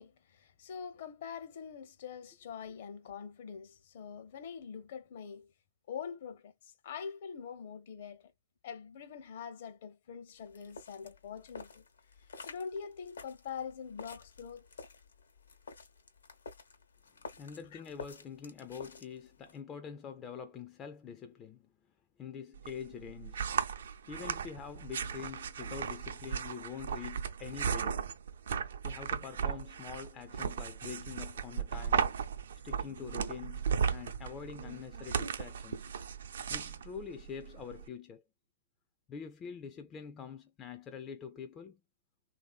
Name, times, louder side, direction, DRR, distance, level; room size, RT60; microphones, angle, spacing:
voice 1, 0.0-5.5 5.9-8.2 8.6-11.8 12.4-14.7 17.7-17.8, left 7 dB, 55° left, 0.7 m, -44 dB
sound 1, 10.4-19.6, left 4 dB, 80° left, 1.0 m, -51 dB
voice 2, 17.3-21.7 22.2-23.5 24.1-28.1 28.8-32.1 32.6-33.7 33.9-35.9 36.5-38.2 39.1-41.8, left 7 dB, 25° left, 0.4 m, -45 dB
sound 2, 22.6-37.9, right 7 dB, 70° right, 0.6 m, -36 dB
3.1 x 2.7 x 2.3 m
hypercardioid pair, 125°, 0 cm